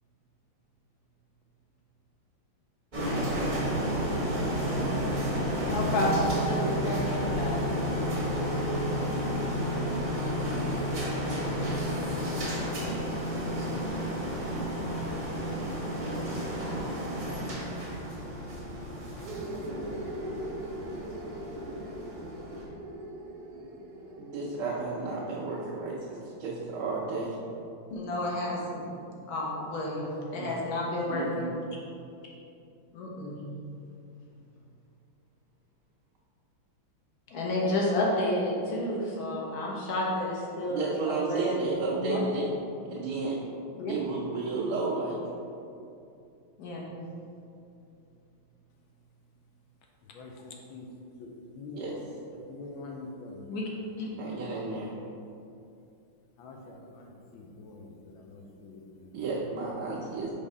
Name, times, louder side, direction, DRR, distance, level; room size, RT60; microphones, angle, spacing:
sound 1, 2.9-22.6, equal, 30° right, 0.9 m, -31 dB
voice 1, 5.6-7.6 27.9-28.9 29.3-31.5 32.9-33.4 37.3-41.4 42.0-42.2 43.7-43.9 46.6-46.9 53.5-53.6 54.0-54.1, left 1 dB, 55° left, -3 dB, 1.3 m, -31 dB
sound 2, 19.2-26.8, right 1 dB, 70° right, 1.2 m, -41 dB
voice 2, 24.2-27.3 30.4-30.6 31.1-31.5 40.7-42.5 42.9-43.4 43.9-45.2 51.8-51.9 54.2-54.9 59.1-60.3, right 3 dB, 85° right, -5 dB, 1.6 m, -32 dB
voice 3, 50.0-50.9 51.2-53.5 56.4-59.2, left 2 dB, 75° left, 0 dB, 1.4 m, -45 dB
5.1 x 3.5 x 5.3 m, 2.6 s
omnidirectional pair, 2.3 m